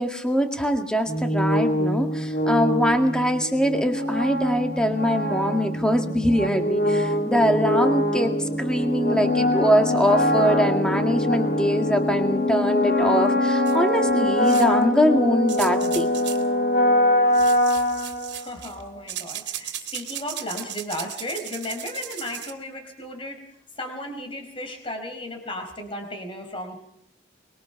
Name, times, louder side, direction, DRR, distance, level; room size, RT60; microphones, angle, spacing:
voice 1, 0.0-16.1, equal, 5° left, 4 dB, 2.0 m, -23 dB
sound 1, 1.1-18.7, left 1 dB, 50° left, 2.7 m, -23 dB
sound 2, 13.7-13.8 14.4-14.8 15.5-16.5 17.3-18.8 19.1-22.5, right 12 dB, 65° right, 2.7 m, -36 dB
voice 2, 18.3-26.8, left 1 dB, 30° left, 4 dB, 4.6 m, -35 dB
24.5 x 23.0 x 5.9 m, 0.71 s
head